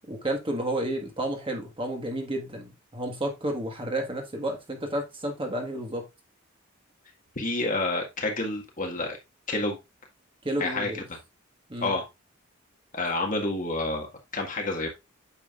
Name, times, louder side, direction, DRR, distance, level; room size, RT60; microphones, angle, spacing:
voice 1, 0.1-6.0 10.4-11.0 11.7-11.9, right 1 dB, 25° right, 1.6 m, -31 dB
voice 2, 7.4-9.2 9.5-9.8 10.6-11.2 11.8-12.0 12.9-14.1 14.3-14.9, left 2 dB, 40° left, 1.8 m, -29 dB
8.9 x 6.4 x 2.5 m
head